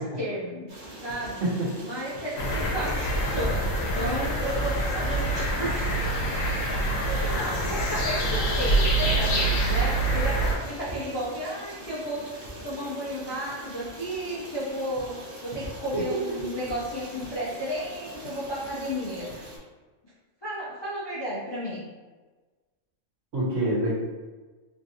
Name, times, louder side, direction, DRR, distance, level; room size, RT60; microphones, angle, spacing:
voice 1, 0.2-1.4 1.8-6.5 7.1-19.5 20.4-21.9, equal, 40° left, -9 dB, 0.4 m, -33 dB
Stream, 0.7-19.6, right 1 dB, 45° right, 0.7 m, -43 dB
voice 2, 1.4-1.7 15.9-16.4 23.3-23.9, right 1 dB, 75° right, -6 dB, 1.4 m, -26 dB
sound 1, 2.4-10.5, right 1 dB, 85° left, 1.1 m, -25 dB
3.2 x 2.7 x 2.5 m, 1.3 s
omnidirectional pair, 1.3 m